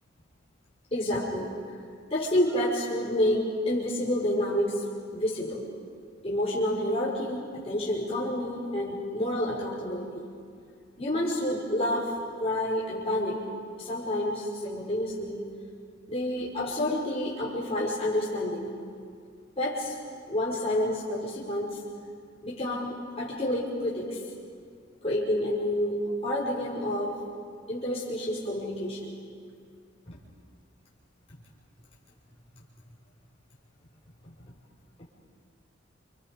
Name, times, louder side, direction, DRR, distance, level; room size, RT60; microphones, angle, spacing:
voice 1, 0.9-1.6 2.1-4.8 5.1-5.6 6.2-10.2 11.0-13.4 13.8-15.4 16.1-18.8 19.6-20.0 20.3-21.8 22.4-24.2 25.0-27.1 27.7-29.2 30.1-30.2, left 1 dB, 30° left, -7 dB, 5.0 m, -29 dB
29.5 x 26.0 x 5.2 m, 2.2 s
head